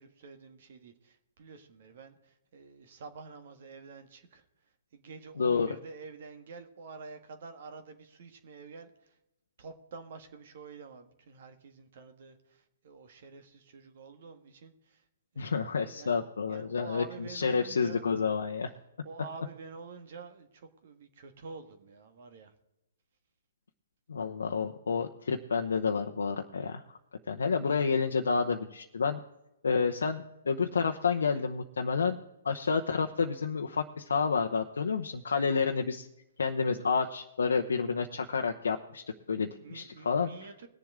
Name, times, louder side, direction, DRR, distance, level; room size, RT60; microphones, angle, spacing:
voice 1, 0.0-4.4 4.9-9.2 9.6-15.0 15.3-16.2 16.5-18.1 19.0-22.5 35.3-35.6 39.6-40.7, right 4 dB, 55° right, 8 dB, 1.6 m, -48 dB
voice 2, 5.4-5.7 15.4-17.0 17.3-18.7 24.1-27.0 27.3-29.2 29.6-32.2 32.4-36.1 36.4-40.3, left 5 dB, 80° left, 3 dB, 0.9 m, -29 dB
21.0 x 7.4 x 3.7 m, 0.92 s
hypercardioid pair, 135°, 0 cm